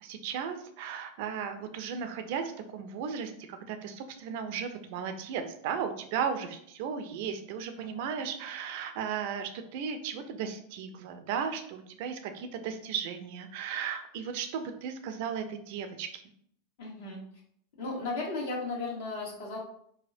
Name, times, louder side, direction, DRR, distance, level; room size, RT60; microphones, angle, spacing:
voice 1, 0.0-16.2, right 7 dB, 55° right, 7 dB, 0.4 m, -35 dB
voice 2, 16.8-17.2 17.8-19.6, left 3 dB, 60° left, -3 dB, 1.2 m, -35 dB
4.3 x 2.1 x 2.6 m, 0.66 s
figure-of-eight pair, 90°, 0 cm